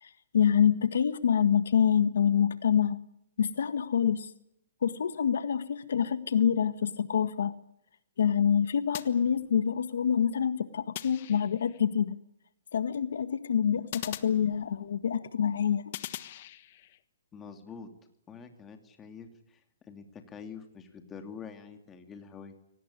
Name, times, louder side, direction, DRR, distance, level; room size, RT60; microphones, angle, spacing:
voice 1, 0.0-3.0 3.4-4.3 4.8-7.5 8.2-12.2 12.7-15.8, left 8 dB, 75° left, 13 dB, 1.6 m, -26 dB
sound 1, 8.9-9.9 10.9-11.8 13.9-15.0 15.9-17.0, left 13 dB, 45° left, 1.4 m, -42 dB
voice 2, 17.3-17.9 18.3-22.5, left 6 dB, 15° left, 6 dB, 2.8 m, -46 dB
24.0 x 19.0 x 9.8 m, 0.77 s
hypercardioid pair, 155°, 0 cm